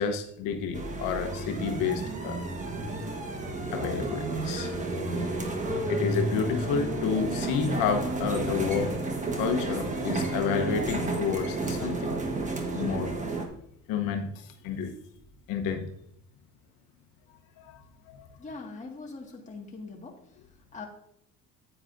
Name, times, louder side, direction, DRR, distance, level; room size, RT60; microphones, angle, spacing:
voice 1, 0.0-2.4 3.7-4.7 5.9-8.9 9.3-12.2 12.7-13.1 13.9-15.0 15.5-15.9 17.6-17.8 18.1-18.3, left 6 dB, 85° left, 5 dB, 1.0 m, -30 dB
sound 1, 0.7-13.5, right 2 dB, 20° right, 1.3 m, -31 dB
voice 2, 18.4-20.4 20.7-20.9, left 3 dB, 20° left, 0 dB, 1.8 m, -42 dB
9.7 x 8.9 x 2.6 m, 0.73 s
cardioid pair, 130°, 33 cm